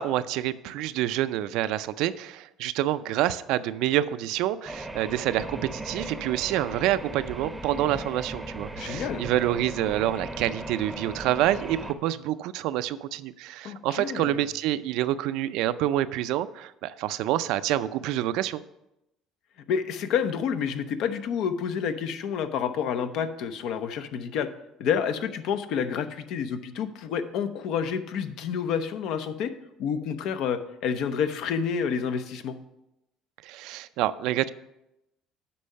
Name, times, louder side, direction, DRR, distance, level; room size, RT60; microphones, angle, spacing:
voice 1, 0.0-18.6 33.4-34.5, right 13 dB, 75° right, 14 dB, 0.4 m, -27 dB
sound 1, 4.7-11.9, right 1 dB, 5° right, 0.7 m, -37 dB
voice 2, 8.7-9.2 13.6-14.5 19.7-24.5 24.8-29.5 29.8-32.6, left 7 dB, 70° left, 10 dB, 0.7 m, -29 dB
8.5 x 5.4 x 5.5 m, 0.88 s
cardioid pair, 125°, 0 cm